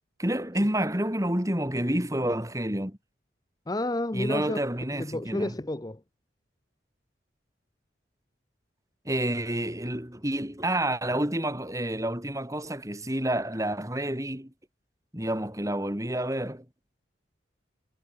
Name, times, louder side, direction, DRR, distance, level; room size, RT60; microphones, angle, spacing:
voice 1, 0.2-3.0 4.1-5.5 9.1-14.5 15.1-16.7, right 1 dB, 15° right, 3.7 m, -29 dB
voice 2, 3.7-4.6 4.9-6.0, left 1 dB, 20° left, 0.7 m, -30 dB
head